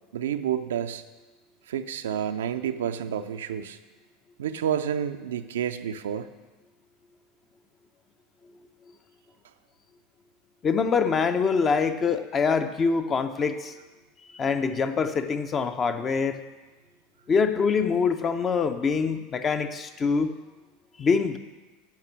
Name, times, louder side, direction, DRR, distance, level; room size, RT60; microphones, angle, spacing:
voice 1, 0.1-1.0 1.7-3.8 4.4-6.3, right 9 dB, 75° right, 9 dB, 0.5 m, -29 dB
voice 2, 10.6-13.7 14.4-16.4 17.3-20.3 21.0-21.4, left 5 dB, 30° left, 9 dB, 0.8 m, -24 dB
10.5 x 6.0 x 6.1 m, 1.2 s
figure-of-eight pair, 80°, 0 cm